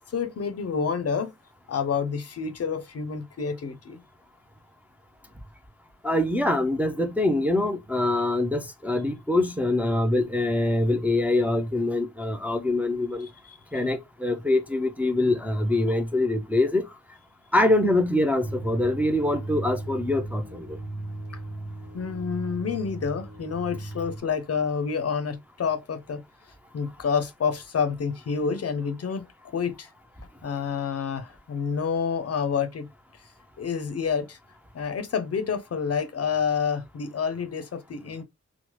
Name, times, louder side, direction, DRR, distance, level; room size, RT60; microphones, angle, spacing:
voice 1, 0.1-1.3 1.7-4.0 13.2-13.6 21.9-26.2 26.7-29.9 30.4-32.9 33.2-33.3 33.6-34.4 34.7-38.2, left 6 dB, 55° left, 0.5 m, -28 dB
voice 2, 6.0-13.3 13.7-16.8 17.5-20.6, left 2 dB, 5° right, 0.4 m, -24 dB
sound 1, 18.4-24.2, right 2 dB, 65° right, 1.0 m, -37 dB
3.0 x 2.1 x 2.9 m
wide cardioid pair, 105°, 30 cm